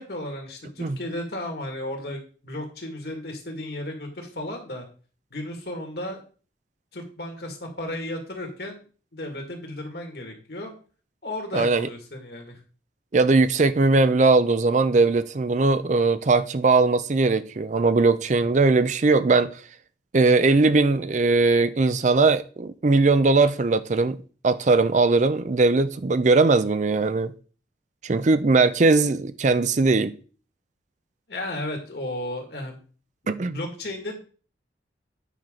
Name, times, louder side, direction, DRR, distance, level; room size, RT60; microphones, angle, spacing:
voice 1, 0.0-4.9 5.3-6.2 6.9-8.8 9.1-10.7 11.2-12.6 31.3-32.8 33.2-34.2, left 1 dB, 60° left, 2.0 m, -34 dB
voice 2, 11.5-11.9 13.1-19.6 20.1-24.2 24.4-27.3 28.0-30.2 33.3-33.6, right 3 dB, 40° right, 0.5 m, -20 dB
9.1 x 5.8 x 3.8 m
head